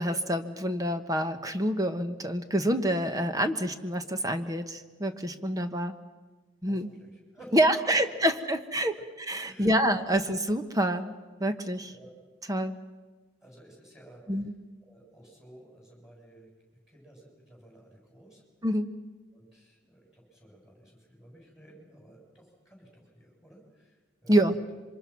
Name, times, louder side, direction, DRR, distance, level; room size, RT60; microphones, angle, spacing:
voice 1, 0.0-5.9 6.6-6.9 7.5-11.1 11.4-11.9 12.5-12.8 14.3-14.5 18.6-18.9 24.3-24.6, right 1 dB, 20° right, 8 dB, 1.1 m, -27 dB
voice 2, 6.7-7.6 7.9-8.0 9.4-9.8 11.8-12.1 13.4-14.4 14.8-16.5 16.9-18.4 19.3-24.4, right 1 dB, ahead, -1 dB, 7.7 m, -53 dB
26.5 x 24.5 x 6.0 m, 1.3 s
head